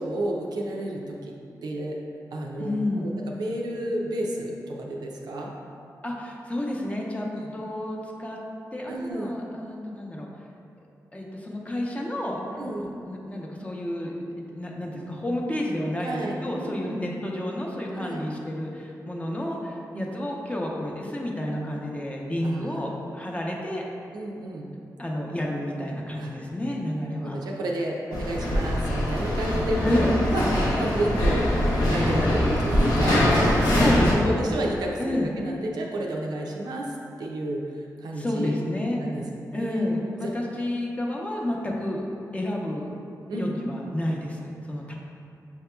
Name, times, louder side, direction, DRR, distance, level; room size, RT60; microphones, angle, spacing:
voice 1, 0.0-1.4 1.6-2.0 2.3-2.8 3.0-5.5 7.3-7.5 8.8-9.4 12.6-12.9 16.0-17.1 18.0-18.2 19.9-20.1 22.4-22.8 24.1-24.7 26.2-26.3 27.0-30.5 30.7-33.2 33.9-36.9 37.2-37.6 38.0-38.6 39.0-39.9 40.2-40.3 43.3-43.6, right 1 dB, 90° right, -1 dB, 0.4 m, -31 dB
voice 2, 2.6-3.1 6.0-8.4 8.7-10.3 11.1-23.9 25.0-27.4 29.8-30.1 33.6-34.5 35.0-35.3 38.1-39.0 39.5-42.0 42.3-42.9 43.3-44.9, left 1 dB, 20° left, -2 dB, 0.6 m, -30 dB
sound 1, 28.1-34.1, left 1 dB, 85° left, 0.8 m, -23 dB
5.7 x 2.8 x 2.2 m, 2.5 s
cardioid pair, 65°, 7 cm